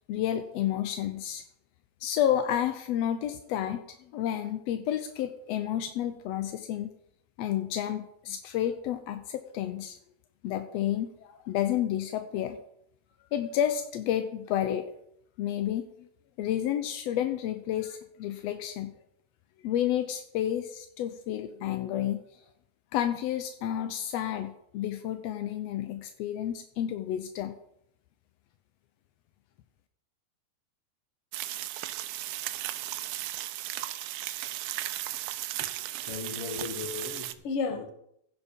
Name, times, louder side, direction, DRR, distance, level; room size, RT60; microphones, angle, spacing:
voice 1, 0.1-1.4 2.0-3.8 4.1-6.9 7.4-10.0 10.4-12.6 13.3-14.9 15.4-15.8 16.4-18.9 19.6-22.2 22.9-27.6, left 11 dB, 75° left, 8 dB, 1.6 m, -30 dB
sound 1, 31.3-37.3, right 14 dB, 80° right, 2.0 m, -35 dB
voice 2, 36.0-37.9, left 5 dB, 55° left, 6 dB, 2.0 m, -34 dB
15.5 x 7.2 x 5.3 m, 0.74 s
omnidirectional pair, 3.6 m